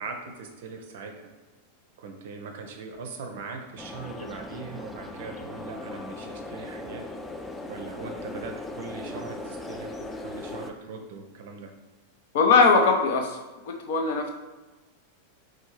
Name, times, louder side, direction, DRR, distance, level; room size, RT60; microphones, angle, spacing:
voice 1, 0.0-1.3 2.0-7.0 7.7-11.7, right 4 dB, 60° right, 4 dB, 0.5 m, -40 dB
sound 1, 3.8-10.7, left 2 dB, 10° left, 0.3 m, -38 dB
voice 2, 12.3-13.4 13.8-14.3, left 4 dB, 60° left, 3 dB, 0.6 m, -20 dB
4.4 x 2.3 x 3.0 m, 1.2 s
figure-of-eight pair, 90°, 0 cm